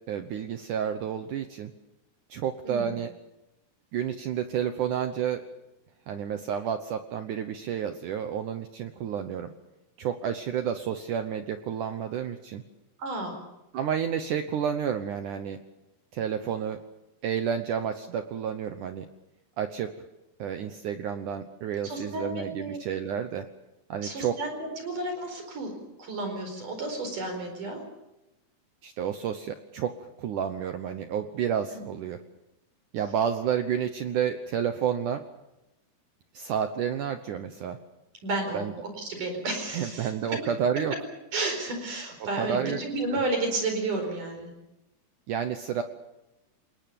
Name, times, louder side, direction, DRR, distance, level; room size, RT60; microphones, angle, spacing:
voice 1, 0.1-1.7 2.3-3.1 3.9-5.4 6.1-9.5 10.0-12.6 13.7-15.6 16.1-16.8 17.2-19.1 19.6-19.9 20.4-23.5 23.9-24.4 28.8-32.2 32.9-35.2 36.3-37.8 38.5-38.7 39.7-40.9 42.4-42.8 43.1-43.2 45.3-45.8, right 8 dB, 70° right, 8 dB, 2.0 m, -30 dB
voice 2, 13.0-13.4 21.8-22.8 24.0-25.7 26.0-27.8 31.7-31.8 38.2-38.7 39.0-40.4 41.3-44.5, right 2 dB, 50° right, 5 dB, 5.9 m, -32 dB
28.0 x 19.5 x 7.0 m, 0.92 s
omnidirectional pair, 4.8 m